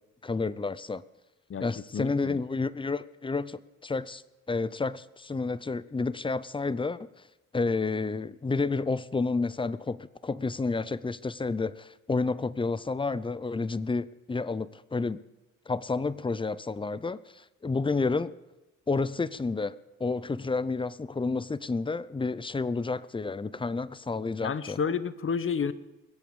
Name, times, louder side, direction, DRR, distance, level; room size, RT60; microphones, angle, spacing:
voice 1, 0.2-1.0 1.6-4.2 4.5-7.1 7.5-15.2 15.7-18.3 18.9-19.7 20.0-24.8, left 3 dB, 15° left, 0.6 m, -30 dB
voice 2, 1.9-2.4 24.4-25.7, left 6 dB, 40° left, 1.1 m, -30 dB
21.5 x 8.5 x 7.2 m
cardioid pair, 105°, 33 cm